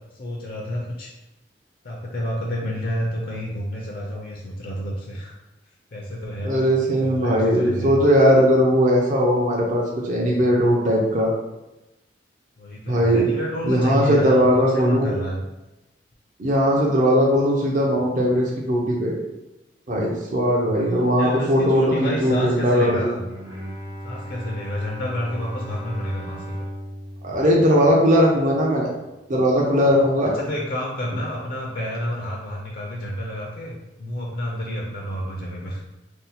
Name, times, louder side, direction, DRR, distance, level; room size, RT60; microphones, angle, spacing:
voice 1, 0.1-1.1 1.8-5.3 5.9-8.0 12.6-14.5 14.7-15.4 20.8-23.3 24.0-26.7 29.7-35.8, equal, 55° left, -2 dB, 0.4 m, -30 dB
voice 2, 6.4-11.3 12.9-13.3 13.6-15.1 16.4-19.2 19.9-23.1 27.2-28.9 29.3-30.4, equal, 45° right, -2 dB, 0.5 m, -19 dB
Bowed string instrument, 23.2-28.5, equal, 85° right, 1.0 m, -36 dB
2.7 x 2.1 x 3.9 m, 1.0 s
head